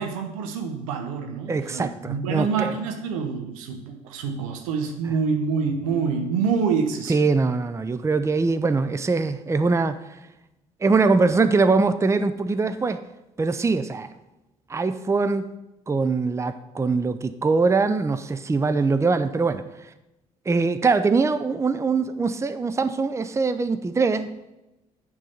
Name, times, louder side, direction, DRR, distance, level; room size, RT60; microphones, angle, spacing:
voice 1, 0.0-7.3, right 5 dB, 75° right, 5 dB, 1.1 m, -26 dB
voice 2, 1.5-2.7 7.1-10.0 10.8-13.0 13.4-14.1 14.7-15.5 15.9-19.6 20.5-24.3, right 4 dB, 15° right, 11 dB, 0.6 m, -22 dB
9.0 x 3.9 x 7.0 m, 0.96 s
hypercardioid pair, 50°, 17 cm